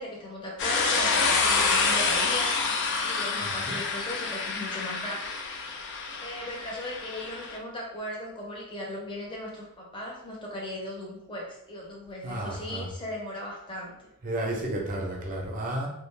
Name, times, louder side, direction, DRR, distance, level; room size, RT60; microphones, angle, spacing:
voice 1, 0.0-2.6 3.0-5.3 6.2-14.0, left 1 dB, 20° left, -3 dB, 0.7 m, -37 dB
sound 1, 0.6-7.6, left 4 dB, 55° left, 0.4 m, -27 dB
voice 2, 3.4-3.8 12.2-12.9 14.2-15.9, right 1 dB, 40° right, 0 dB, 0.6 m, -32 dB
2.4 x 2.2 x 3.1 m, 0.79 s
head